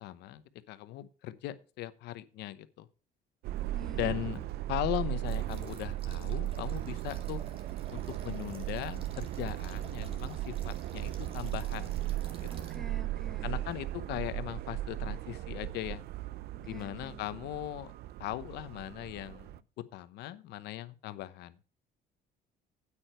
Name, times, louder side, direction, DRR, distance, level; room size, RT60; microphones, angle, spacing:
voice 1, 0.0-2.9 3.9-4.4 4.7-7.4 7.9-12.0 12.4-12.7 13.4-16.0 16.6-17.9 18.2-19.6 19.9-21.6, left 14 dB, 80° left, 0.9 m, -39 dB
Subway metro underground, 3.4-19.6, right 14 dB, 70° right, 0.5 m, -37 dB
voice 2, 3.7-4.4 12.5-13.5 16.7-17.2, equal, ahead, 0.6 m, -49 dB
sound 1, 5.2-12.8, right 3 dB, 35° right, 2.1 m, -54 dB
8.7 x 8.7 x 4.5 m
cardioid pair, 110°, 17 cm